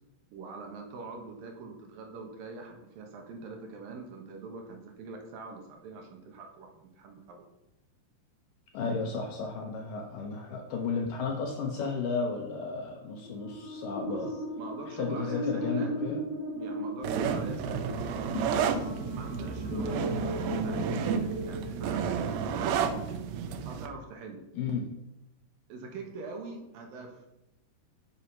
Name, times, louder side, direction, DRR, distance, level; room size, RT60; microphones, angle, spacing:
voice 1, 0.3-7.5 14.1-16.2 16.5-18.0 18.5-22.9 23.7-24.5 25.7-27.3, right 3 dB, 70° right, 3 dB, 2.6 m, -43 dB
voice 2, 8.7-14.3 15.0-16.2 24.5-24.9, left 4 dB, 75° left, 2 dB, 2.1 m, -33 dB
sound 1, 13.2-22.6, equal, 50° left, 2.6 m, -36 dB
sound 2, 17.0-23.9, right 7 dB, 85° right, 2.8 m, -31 dB
8.2 x 6.9 x 5.8 m, 0.87 s
omnidirectional pair, 4.9 m